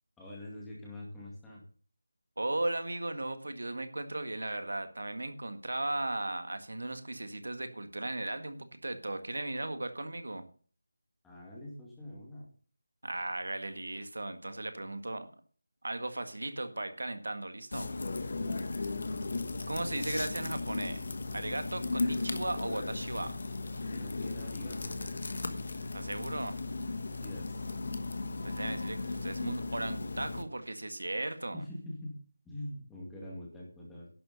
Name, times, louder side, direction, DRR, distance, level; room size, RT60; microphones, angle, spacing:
voice 1, 0.2-1.6 11.2-12.5 18.2-18.6 23.9-25.2 27.2-27.7 31.5-32.2 32.4-34.1, left 1 dB, 5° left, -5 dB, 2.2 m, -44 dB
voice 2, 2.4-10.5 13.0-15.3 15.8-17.9 19.7-21.1 21.3-23.4 25.9-26.6 28.4-31.6, right 2 dB, 85° right, 8 dB, 1.8 m, -36 dB
sound 1, 17.7-30.4, left 3 dB, 50° left, 1.3 m, -36 dB
11.5 x 6.8 x 6.8 m, 0.43 s
figure-of-eight pair, 175°, 0 cm